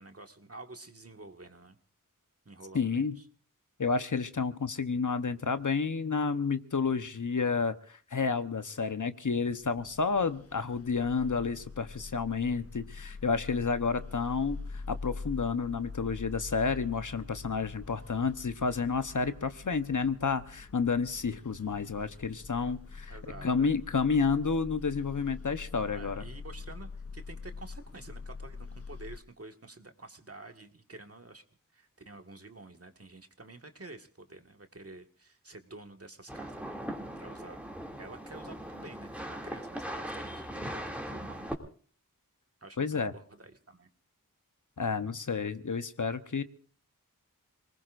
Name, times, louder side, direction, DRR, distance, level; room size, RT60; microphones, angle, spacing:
voice 1, 0.0-1.8 2.5-3.3 23.1-23.8 25.9-31.4 31.7-36.8 37.2-37.6 38.0-41.6 42.6-43.9, right 2 dB, 45° right, 5 dB, 1.8 m, -49 dB
voice 2, 2.7-3.2 3.8-26.2 42.8-43.1 44.8-46.4, left 5 dB, 60° left, 10 dB, 1.0 m, -30 dB
sound 1, 9.6-29.2, left 4 dB, 45° left, 0.7 m, -44 dB
sound 2, 36.3-41.5, equal, 5° right, 2.7 m, -39 dB
27.5 x 19.5 x 2.6 m, 0.43 s
wide cardioid pair, 60°, 34 cm